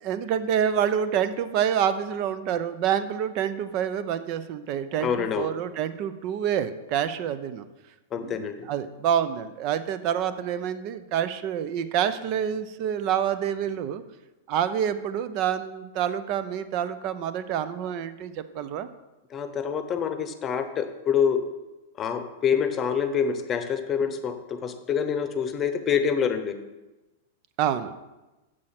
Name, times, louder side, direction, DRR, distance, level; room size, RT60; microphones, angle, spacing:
voice 1, 0.0-7.7 8.2-14.0 14.5-18.9 27.6-27.9, right 9 dB, 45° right, 12 dB, 0.7 m, -27 dB
voice 2, 5.0-5.5 8.1-8.6 19.3-21.4 22.0-26.5, left 7 dB, 30° left, 9 dB, 0.9 m, -26 dB
7.8 x 6.3 x 5.9 m, 1.1 s
hypercardioid pair, 115°, 0 cm